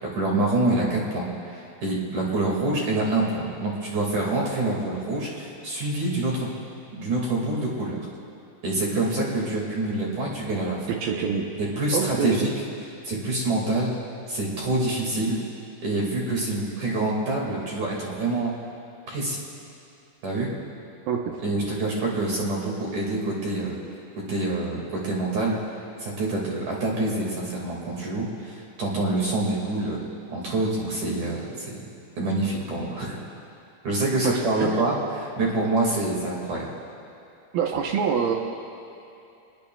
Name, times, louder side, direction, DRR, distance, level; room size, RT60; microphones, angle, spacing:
voice 1, 0.0-6.5 6.9-8.0 8.6-10.9 11.6-12.5 13.0-13.9 14.3-15.4 15.8-18.5 19.1-19.4 20.2-20.5 21.4-23.8 24.2-25.6 26.0-30.0 30.3-31.8 32.2-33.2 33.8-36.7, right 2 dB, 50° right, -3 dB, 2.8 m, -26 dB
voice 2, 10.9-11.5 11.9-12.5 21.1-21.4 34.2-34.8 37.5-38.4, right 6 dB, 90° right, 1 dB, 2.1 m, -26 dB
27.0 x 20.5 x 2.3 m, 2.8 s
omnidirectional pair, 5.6 m